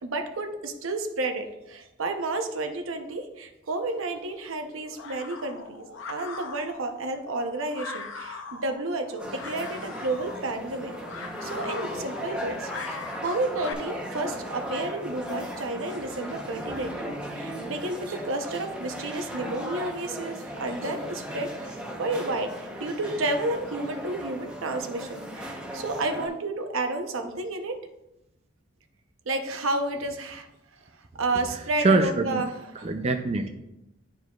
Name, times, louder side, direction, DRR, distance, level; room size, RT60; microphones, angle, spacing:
voice 1, 0.0-22.5 22.8-27.8 29.3-30.5 31.2-32.5 32.8-32.9, right 2 dB, 80° right, 5 dB, 0.8 m, -31 dB
sound 1, 3.9-13.7, left 4 dB, 65° left, 0.7 m, -41 dB
sound 2, 9.2-26.3, equal, 5° right, 0.8 m, -37 dB
voice 2, 31.8-32.4 32.8-33.5, right 2 dB, 30° right, 5 dB, 0.4 m, -23 dB
11.0 x 4.7 x 2.4 m, 0.90 s
head